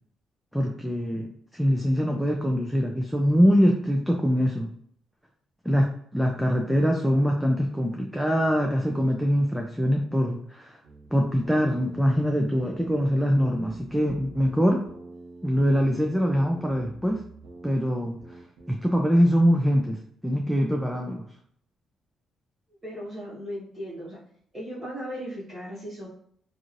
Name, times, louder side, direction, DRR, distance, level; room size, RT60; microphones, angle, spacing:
voice 1, 0.5-4.7 5.6-10.8 11.1-14.8 15.4-17.2 17.6-18.2 18.7-21.3, equal, ahead, 0 dB, 0.4 m, -23 dB
sound 1, 10.8-13.1 13.3-17.8 18.2-18.7, right 2 dB, 85° right, 0.9 m, -46 dB
voice 2, 22.8-24.2 24.5-26.1, equal, 35° right, -11 dB, 1.1 m, -37 dB
2.9 x 2.6 x 2.5 m, 0.64 s
cardioid pair, 90°, 0 cm